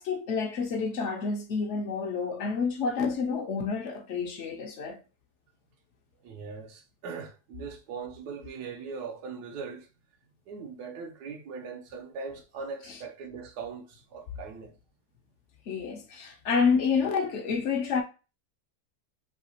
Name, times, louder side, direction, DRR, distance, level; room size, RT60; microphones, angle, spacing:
voice 1, 0.0-5.0 12.9-13.0 15.7-18.0, left 5 dB, 60° left, 0.8 m, -29 dB
voice 2, 6.2-9.9 10.5-14.7, right 5 dB, 80° right, 1.3 m, -40 dB
5.8 x 2.7 x 2.7 m
omnidirectional pair, 1.7 m